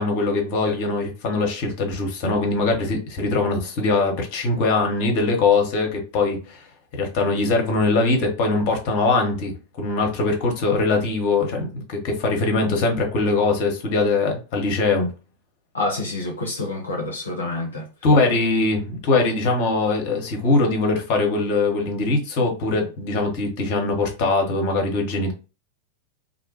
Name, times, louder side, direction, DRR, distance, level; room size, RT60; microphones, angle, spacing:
voice 1, 0.0-6.6 6.9-15.1 18.0-25.3, left 3 dB, 45° left, 0.8 m, -22 dB
voice 2, 15.7-17.9, left 2 dB, 75° left, 0.5 m, -27 dB
2.5 x 2.1 x 2.8 m
figure-of-eight pair, 90°, 0 cm